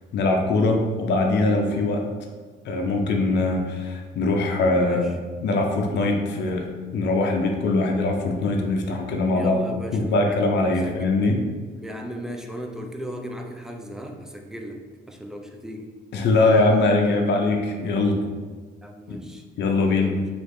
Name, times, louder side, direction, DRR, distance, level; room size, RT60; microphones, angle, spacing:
voice 1, 0.1-2.1 2.6-5.1 5.4-6.7 6.9-9.6 9.9-11.4 16.1-18.2 19.1-19.2 19.6-20.1, left 2 dB, 60° left, 2 dB, 0.5 m, -22 dB
voice 2, 4.7-5.2 9.3-10.4 10.8-11.1 11.8-15.9 18.8-19.4 19.8-20.3, equal, 5° right, 3 dB, 0.4 m, -36 dB
3.2 x 2.5 x 3.2 m, 1.5 s
cardioid pair, 90°, 20 cm